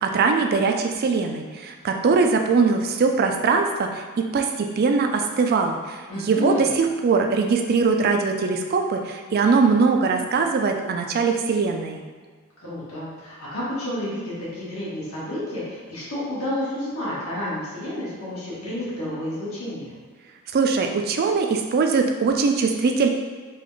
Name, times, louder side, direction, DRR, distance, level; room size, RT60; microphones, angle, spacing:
voice 1, 0.0-12.0 20.5-23.1, right 4 dB, 45° right, 4 dB, 0.3 m, -21 dB
voice 2, 6.1-6.7 12.6-19.9, left 1 dB, 75° left, -8 dB, 1.4 m, -30 dB
3.9 x 2.4 x 3.1 m, 1.6 s
head